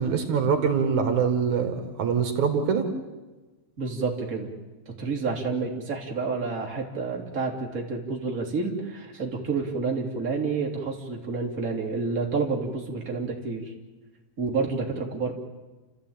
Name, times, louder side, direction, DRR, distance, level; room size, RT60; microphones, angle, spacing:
voice 1, 0.0-2.8, right 6 dB, 75° right, 6 dB, 3.4 m, -24 dB
voice 2, 3.8-4.5 5.0-13.7 14.4-15.3, right 4 dB, 30° right, -1 dB, 3.4 m, -29 dB
29.5 x 14.0 x 8.9 m, 1.2 s
omnidirectional pair, 3.4 m